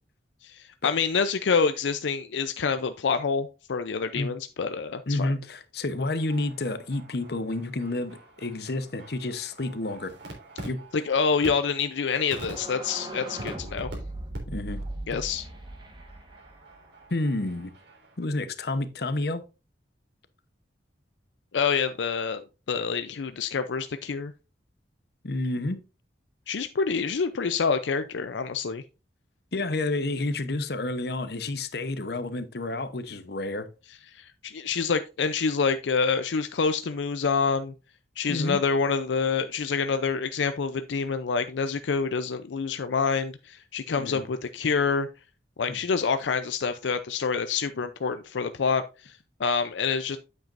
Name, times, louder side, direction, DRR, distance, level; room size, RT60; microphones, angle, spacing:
voice 1, 0.4-5.3 10.9-13.9 15.1-15.5 21.5-22.4 22.7-24.3 26.5-28.8 34.1-37.7 38.2-45.1 45.6-50.2, left 5 dB, 90° left, 0.5 m, -27 dB
voice 2, 5.1-10.1 10.6-10.8 14.5-14.8 15.1-15.2 17.1-17.7 18.2-19.4 25.2-25.8 29.5-33.7 38.3-38.6 44.0-44.2 45.7-45.8, left 2 dB, 60° left, 0.9 m, -30 dB
sound 1, 6.1-14.0 14.3-14.4 14.6-14.9 15.3-18.2, right 1 dB, 80° right, 3.4 m, -46 dB
sound 2, 12.2-17.0, right 1 dB, 25° right, 1.4 m, -39 dB
9.0 x 7.8 x 2.5 m
head